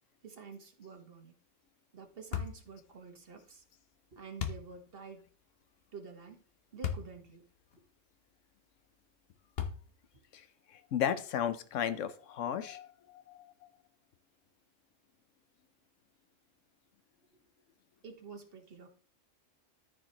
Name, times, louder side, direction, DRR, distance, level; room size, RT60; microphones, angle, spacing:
voice 1, 0.2-1.4 1.9-3.6 4.1-5.3 5.9-6.4 6.7-7.5 18.0-18.9, right 5 dB, 50° right, 4 dB, 1.5 m, -49 dB
sound 1, 2.3-2.7 4.4-4.7 6.8-7.1 7.7-7.8 9.6-10.1, left 8 dB, 55° left, 1.1 m, -35 dB
voice 2, 10.7-13.4, left 9 dB, 75° left, 12 dB, 1.1 m, -34 dB
13.5 x 4.7 x 2.9 m, 0.42 s
omnidirectional pair, 1.3 m